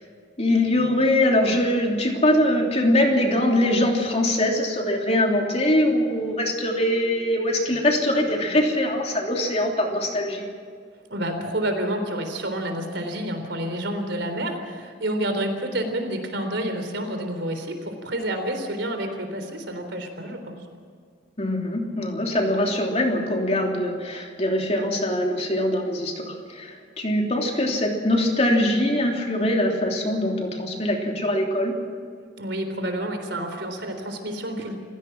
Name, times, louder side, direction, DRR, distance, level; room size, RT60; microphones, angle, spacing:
voice 1, 0.4-10.5 21.4-31.7, left 1 dB, 35° left, 1 dB, 3.1 m, -22 dB
voice 2, 11.1-20.6 32.4-34.8, right 1 dB, 70° right, 6 dB, 3.7 m, -29 dB
28.0 x 16.5 x 6.2 m, 2.1 s
head